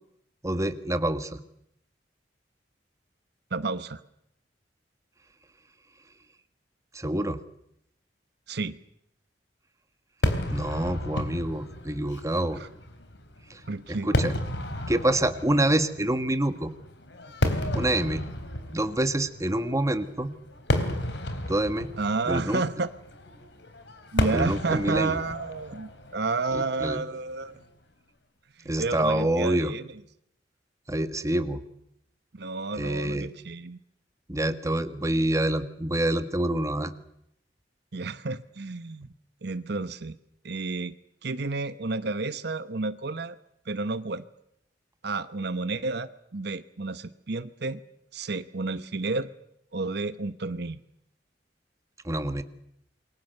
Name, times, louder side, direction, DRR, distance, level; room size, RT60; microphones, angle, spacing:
voice 1, 0.4-1.4 6.9-7.4 10.5-12.6 13.5-13.6 13.9-14.3 14.9-16.7 17.7-18.2 18.7-20.3 21.5-21.9 22.3-22.6 24.3-25.2 26.5-27.0 28.6-29.7 30.9-31.7 32.8-33.3 34.3-36.9 52.0-52.4, right 1 dB, 20° right, 10 dB, 1.5 m, -26 dB
voice 2, 3.5-4.0 8.5-8.8 12.6-12.7 13.7-14.1 22.0-22.9 24.1-27.6 28.6-29.8 32.3-33.8 37.9-39.1 39.4-40.2 40.4-40.9 41.2-43.4 43.7-44.2 45.0-47.8 48.1-49.3 49.7-50.8, right 3 dB, 65° right, 13 dB, 1.1 m, -31 dB
Fireworks, 10.2-27.6, left 1 dB, 70° left, 3.6 m, -33 dB
28.0 x 23.0 x 6.7 m, 0.76 s
head